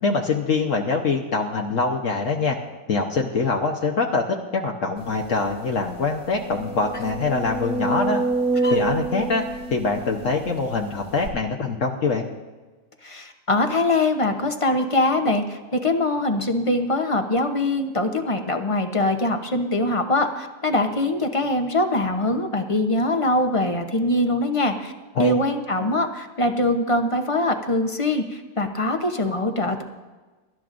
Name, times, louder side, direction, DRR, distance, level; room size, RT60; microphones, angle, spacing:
voice 1, 0.0-2.6 2.9-8.2 8.7-9.4 9.7-12.3 25.1-25.4 25.8-25.9, left 4 dB, 60° left, 1 dB, 1.2 m, -24 dB
sound 1, 5.2-5.3 5.7-5.8 6.4-10.6 11.2-11.3, right 3 dB, 75° right, 3.0 m, -27 dB
voice 2, 13.0-24.9 25.2-29.8, left 2 dB, 30° left, 6 dB, 0.7 m, -23 dB
23.5 x 12.0 x 2.6 m, 1.3 s
omnidirectional pair, 1.6 m